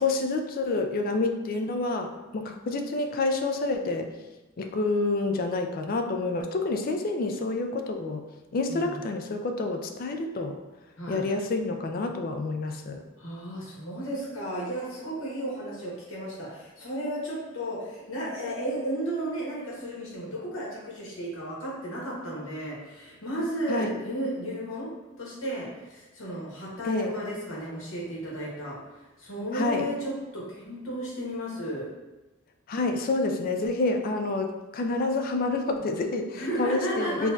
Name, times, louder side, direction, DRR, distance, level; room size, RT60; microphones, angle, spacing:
voice 1, 0.0-4.1 4.6-8.2 8.5-10.6 11.1-13.0 23.7-23.9 26.8-27.1 29.5-29.9 32.7-37.3, left 3 dB, 45° left, 5 dB, 0.3 m, -28 dB
voice 2, 13.2-24.9 25.2-31.9 36.3-37.3, right 1 dB, 85° left, -5 dB, 1.2 m, -34 dB
4.5 x 2.2 x 2.6 m, 1.1 s
head